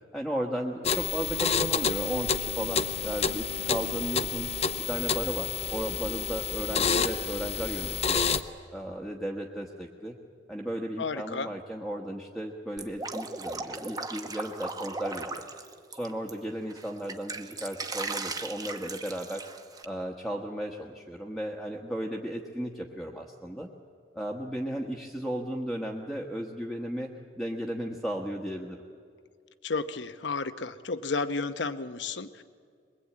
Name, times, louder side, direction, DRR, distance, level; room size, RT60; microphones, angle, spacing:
voice 1, 0.1-4.5 4.9-8.3 8.7-10.1 10.5-15.5 15.9-19.5 19.8-23.7 24.1-27.1 27.4-28.8, equal, ahead, -1 dB, 1.3 m, -35 dB
sound 1, 0.8-8.4, left 6 dB, 35° left, 0.8 m, -29 dB
voice 2, 11.0-11.5 29.6-32.4, left 4 dB, 80° left, 11 dB, 0.9 m, -32 dB
Drip, 12.8-16.3 16.7-19.8, right 3 dB, 20° right, 1.1 m, -37 dB
22.5 x 22.0 x 8.6 m, 2.1 s
head